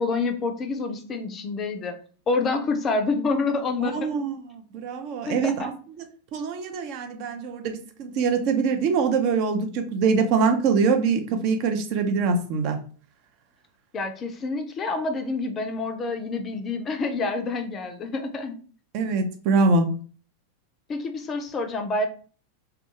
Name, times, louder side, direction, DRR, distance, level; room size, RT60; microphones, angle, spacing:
voice 1, 0.0-2.0 2.3-4.1 5.3-5.7 13.9-18.6 20.9-22.1, left 3 dB, 25° left, 6 dB, 0.4 m, -27 dB
voice 2, 3.8-5.7 6.0-6.1 6.3-12.8 18.9-19.9, right 4 dB, 40° right, 5 dB, 0.4 m, -24 dB
2.3 x 2.2 x 2.8 m, 0.41 s
figure-of-eight pair, 90°, 0 cm